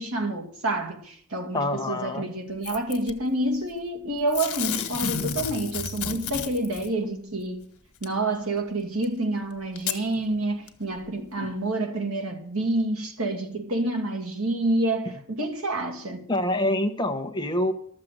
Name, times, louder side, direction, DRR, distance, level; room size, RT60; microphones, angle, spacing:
voice 1, 0.0-7.6 8.0-16.3, right 2 dB, 80° right, 2.2 m, -28 dB
voice 2, 1.5-2.3 5.2-5.3 11.4-11.5 16.3-17.7, left 1 dB, 20° left, 0.9 m, -26 dB
Packing tape duct tape / Tearing, 2.6-3.1 4.3-6.9 8.0-8.1 9.0-9.1 9.8-10.0 10.7-10.8, left 8 dB, 90° left, 1.5 m, -31 dB
13.0 x 7.5 x 7.7 m
head